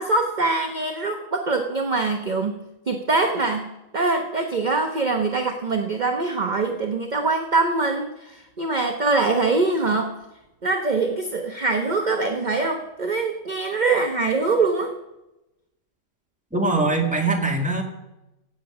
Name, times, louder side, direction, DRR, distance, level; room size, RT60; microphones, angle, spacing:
voice 1, 0.0-10.1 10.6-14.9, right 3 dB, 35° right, 3 dB, 1.1 m, -23 dB
voice 2, 16.5-17.8, right 2 dB, 5° right, 1 dB, 1.9 m, -22 dB
16.0 x 8.4 x 6.0 m, 0.94 s
omnidirectional pair, 1.4 m